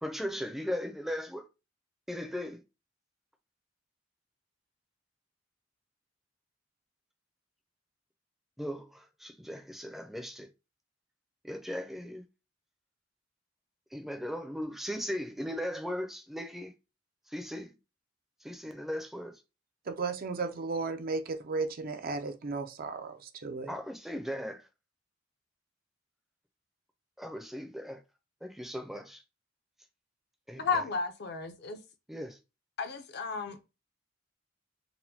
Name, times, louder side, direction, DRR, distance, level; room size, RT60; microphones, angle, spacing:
voice 1, 0.0-1.5 2.1-2.6 8.6-10.5 11.4-12.2 13.9-16.7 17.3-17.8 18.4-19.4 23.7-24.6 27.2-28.0 28.4-29.2 30.5-30.6 32.1-32.4, equal, ahead, 0.5 m, -37 dB
voice 2, 19.9-23.7, right 4 dB, 50° right, 0.5 m, -35 dB
voice 3, 30.6-31.8 32.8-33.7, left 4 dB, 60° left, 0.6 m, -33 dB
4.1 x 2.1 x 2.8 m
head